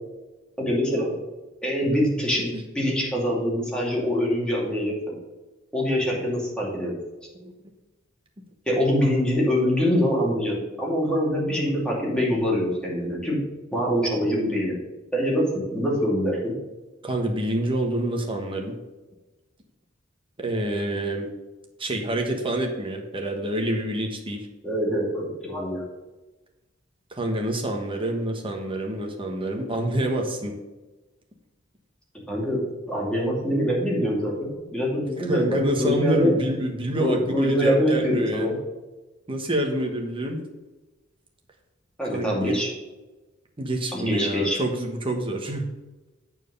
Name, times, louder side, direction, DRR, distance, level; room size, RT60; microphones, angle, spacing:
voice 1, 0.6-1.1 1.6-5.1 5.7-6.9 8.7-13.4 13.7-14.7 15.1-16.5 24.6-25.8 32.3-32.6 32.9-36.4 37.0-38.6 42.0-42.7 43.9-44.6, equal, 5° left, -4 dB, 2.4 m, -24 dB
voice 2, 17.0-18.7 20.4-21.3 21.8-24.5 27.1-30.5 35.2-38.5 39.3-40.4 42.1-42.6 43.6-45.6, right 1 dB, 25° right, 2 dB, 1.3 m, -27 dB
9.0 x 4.7 x 5.4 m, 1.1 s
head